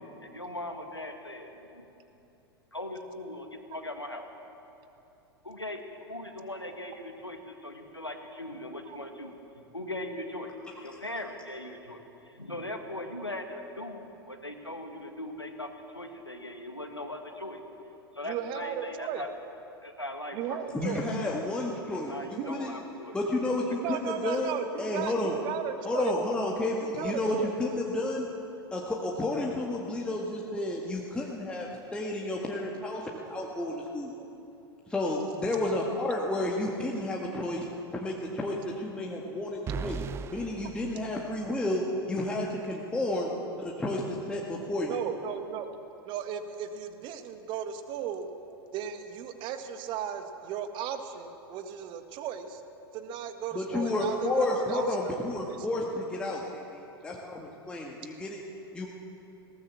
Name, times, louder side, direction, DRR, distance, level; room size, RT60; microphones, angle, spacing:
voice 1, 0.2-1.9 2.7-4.2 5.4-9.3 9.7-10.5 10.8-15.7 15.9-17.6 18.1-19.3 19.8-21.3 22.0-23.2, left 1 dB, 90° left, 4 dB, 1.9 m, -39 dB
voice 2, 18.2-19.2 20.3-21.0 22.4-22.5 23.8-26.1 26.8-27.5 44.9-45.7 46.0-48.3 48.7-52.6 52.9-55.6, right 9 dB, 35° right, 8 dB, 1.6 m, -36 dB
voice 3, 20.7-22.7 23.1-25.4 25.8-28.3 28.7-34.1 34.9-37.7 37.9-40.0 40.3-41.8 42.1-45.0 53.5-58.4 58.7-58.9, left 1 dB, 5° left, -3 dB, 1.9 m, -31 dB
sound 1, 39.7-41.8, right 6 dB, 20° right, 0.6 m, -38 dB
20.0 x 18.0 x 7.3 m, 2.9 s
figure-of-eight pair, 95°, 13 cm